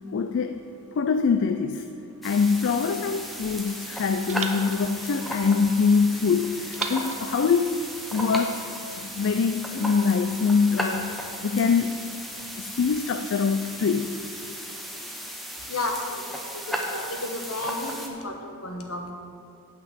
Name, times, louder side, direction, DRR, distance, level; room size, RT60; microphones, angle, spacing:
voice 1, 0.1-0.6 1.0-1.9 2.2-7.8 8.1-8.7 9.0-12.0 12.6-14.2, left 5 dB, 60° left, 8 dB, 0.4 m, -24 dB
sound 1, 2.2-18.1, equal, ahead, 0.9 m, -35 dB
sound 2, 2.5-3.7 4.3-5.9 6.7-8.3, right 6 dB, 30° right, 0.6 m, -40 dB
voice 2, 15.7-16.4 16.7-19.1, left 2 dB, 75° left, 3 dB, 1.3 m, -32 dB
9.1 x 6.0 x 7.8 m, 2.6 s
head